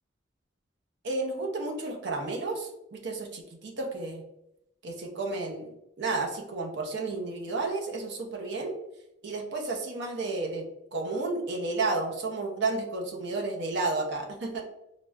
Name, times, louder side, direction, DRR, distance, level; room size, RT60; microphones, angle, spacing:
voice 1, 1.0-4.2 4.8-5.7 6.0-8.7 9.2-10.7 10.9-14.6, right 3 dB, 65° right, 1 dB, 0.6 m, -32 dB
4.7 x 2.0 x 2.3 m, 0.85 s
head